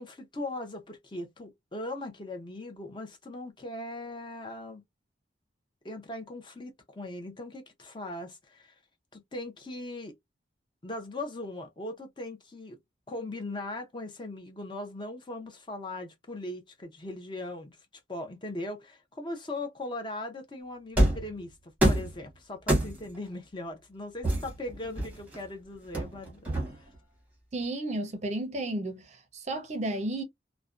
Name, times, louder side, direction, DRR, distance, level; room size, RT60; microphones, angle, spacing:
voice 1, 0.0-4.8 5.8-8.7 9.1-10.1 10.8-12.8 13.1-17.8 18.1-26.9, left 2 dB, 25° left, 0.5 m, -39 dB
sound 1, 21.0-21.3 21.8-22.2 22.7-23.2 24.2-25.4 25.9-27.0, right 1 dB, 10° right, 0.8 m, -26 dB
voice 2, 27.5-30.2, right 2 dB, 35° right, 0.5 m, -33 dB
2.5 x 2.1 x 2.3 m
head